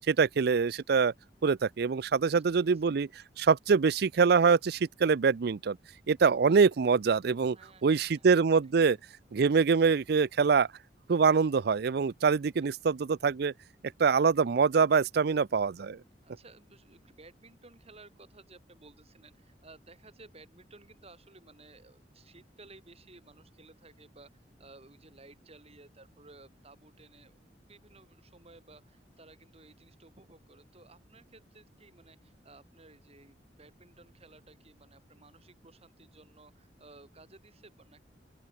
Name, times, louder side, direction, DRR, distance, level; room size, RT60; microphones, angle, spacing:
voice 1, 0.1-1.1 1.4-3.1 3.4-5.8 6.1-7.6 7.8-9.0 9.3-10.7 11.1-13.5 14.0-16.0, right 5 dB, 65° right, 0.5 m, -24 dB
voice 2, 2.3-2.8 7.5-8.3 8.9-9.0 12.8-12.9 16.2-27.3 27.7-38.0, right 3 dB, 35° right, 5.7 m, -56 dB
open air
head